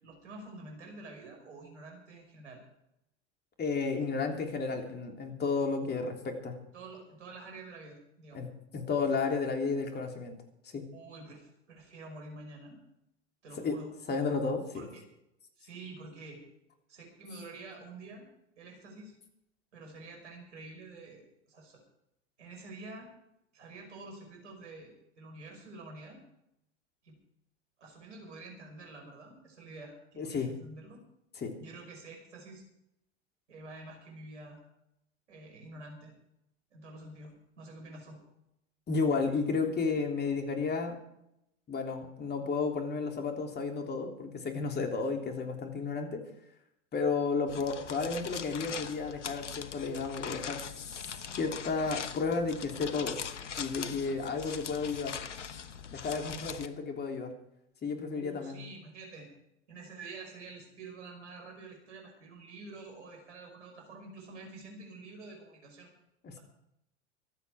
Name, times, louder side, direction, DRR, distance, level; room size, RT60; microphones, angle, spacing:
voice 1, 0.0-2.6 6.7-8.5 10.9-12.8 13.4-13.9 14.7-15.0 15.6-16.4 16.9-18.3 18.6-19.2 19.7-21.8 22.4-23.1 23.5-26.2 27.0-27.2 27.8-31.0 31.6-32.6 33.5-34.6 35.3-36.1 36.7-38.2 58.1-59.3 59.7-65.9, right 3 dB, 80° right, 2 dB, 5.5 m, -48 dB
voice 2, 3.6-6.5 8.3-8.5 8.7-10.3 10.7-10.8 13.6-13.8 14.1-14.9 30.2-30.5 31.4-31.5 38.9-41.0 41.7-46.2 46.9-50.6 51.0-51.1 51.4-53.2 53.6-55.1 55.9-57.3 57.8-58.6 66.2-66.4, left 4 dB, 30° left, 3 dB, 3.2 m, -32 dB
sound 1, 47.5-56.7, left 7 dB, 85° left, 1.1 m, -41 dB
25.0 x 8.5 x 4.9 m, 0.81 s
hypercardioid pair, 90°, 35 cm